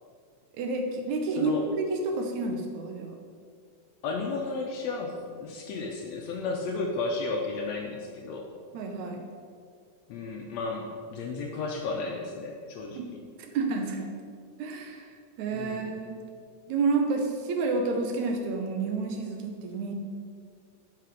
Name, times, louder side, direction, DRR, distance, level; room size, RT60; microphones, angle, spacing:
voice 1, 0.5-3.2 8.7-9.2 13.0-13.1 13.4-14.1 14.6-16.2 16.7-19.9, right 3 dB, 75° right, 3 dB, 2.0 m, -30 dB
voice 2, 4.0-8.5 10.1-13.0 15.5-15.8, left 3 dB, 75° left, 1 dB, 1.6 m, -33 dB
7.8 x 5.8 x 4.9 m, 2.1 s
omnidirectional pair, 3.6 m